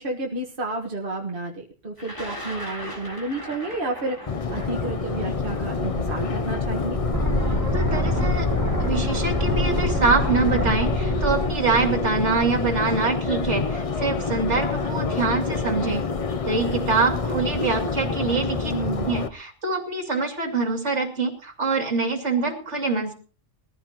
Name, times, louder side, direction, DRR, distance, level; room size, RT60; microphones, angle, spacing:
voice 1, 0.0-7.0 18.7-19.1, right 2 dB, 45° right, -1 dB, 1.7 m, -31 dB
Thunder, 2.0-8.0 8.9-9.0 10.1-10.4 10.7-11.2, equal, 15° left, 3.6 m, -40 dB
Subway metro underground, 4.3-19.3, left 4 dB, 35° left, 0.6 m, -27 dB
sound 1, 7.1-13.1, right 1 dB, 15° right, 2.8 m, -27 dB
voice 2, 7.7-8.5 8.8-16.0 16.4-18.7 19.0-23.1, right 4 dB, 65° right, 2 dB, 3.0 m, -25 dB
21.0 x 14.5 x 3.0 m, 0.39 s
omnidirectional pair, 1.3 m